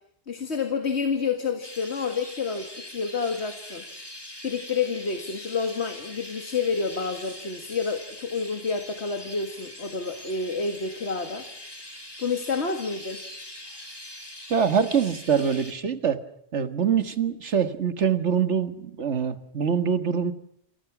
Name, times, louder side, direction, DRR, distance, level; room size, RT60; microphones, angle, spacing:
voice 1, 0.3-3.8 4.4-11.5 12.2-13.2, left 5 dB, 70° left, 7 dB, 2.2 m, -29 dB
Chirp tweet, 1.6-15.7, left 1 dB, 20° left, 3.8 m, -43 dB
voice 2, 14.5-16.2 16.5-20.3, right 7 dB, 85° right, 11 dB, 1.8 m, -24 dB
28.5 x 27.5 x 6.1 m, 0.68 s
omnidirectional pair, 1.2 m